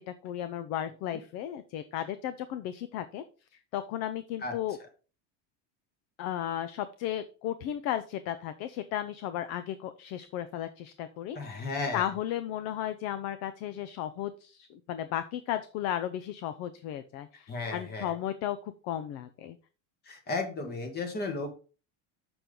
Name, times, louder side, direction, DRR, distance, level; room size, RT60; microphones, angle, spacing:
voice 1, 0.0-3.2 3.7-4.8 6.2-19.6, left 11 dB, 40° left, 12 dB, 0.5 m, -35 dB
voice 2, 11.3-12.0 17.5-18.1 20.0-21.6, left 3 dB, 25° left, 5 dB, 1.6 m, -34 dB
7.0 x 5.9 x 3.7 m, 0.36 s
cardioid pair, 160°, 40 cm